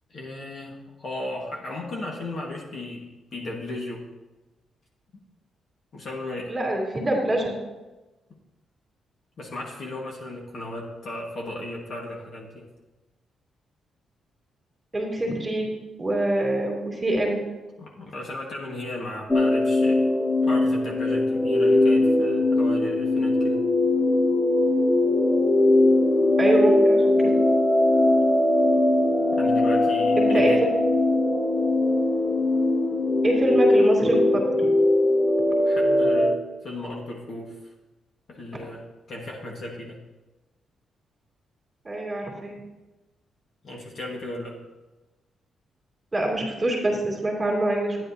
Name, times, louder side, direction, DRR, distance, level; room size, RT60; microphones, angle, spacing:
voice 1, 0.1-4.1 5.9-6.5 9.4-12.6 17.8-20.1 20.4-23.6 29.3-30.6 35.6-37.6 38.3-40.0 43.6-44.6, left 1 dB, 45° left, -1 dB, 1.6 m, -35 dB
voice 2, 6.5-7.5 14.9-15.7 16.0-17.4 26.4-27.4 30.2-30.5 33.2-34.7 41.8-42.6 46.1-48.0, right 1 dB, 15° right, -2 dB, 2.8 m, -25 dB
sound 1, 19.3-36.3, left 2 dB, 10° left, 0.5 m, -20 dB
12.5 x 9.9 x 2.8 m, 1.1 s
wide cardioid pair, 160°, 0 cm